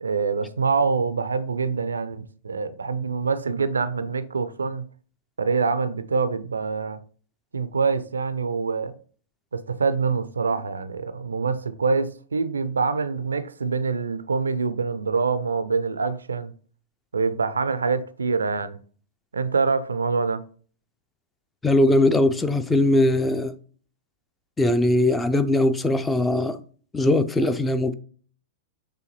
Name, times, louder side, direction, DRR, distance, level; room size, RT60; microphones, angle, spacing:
voice 1, 0.0-4.9 5.4-7.0 7.5-8.9 9.5-16.5 17.1-18.8 19.3-20.4, right 4 dB, 75° right, 0.3 m, -25 dB
voice 2, 21.6-23.5 24.6-26.6 26.9-27.9, left 1 dB, 10° left, 0.4 m, -20 dB
6.2 x 2.6 x 2.9 m
figure-of-eight pair, 100°, 0 cm